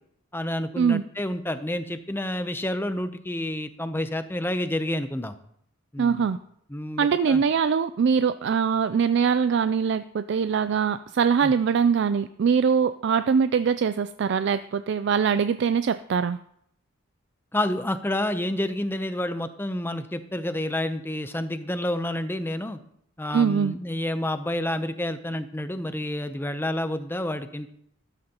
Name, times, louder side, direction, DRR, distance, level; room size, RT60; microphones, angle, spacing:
voice 1, 0.3-5.3 5.9-6.3 6.7-7.4 11.4-11.5 17.5-22.8 23.2-27.7, left 1 dB, 10° left, 10 dB, 0.6 m, -29 dB
voice 2, 6.0-6.4 7.0-16.4 23.3-23.7, right 6 dB, 55° right, 12 dB, 0.3 m, -22 dB
13.5 x 13.0 x 2.9 m, 0.72 s
head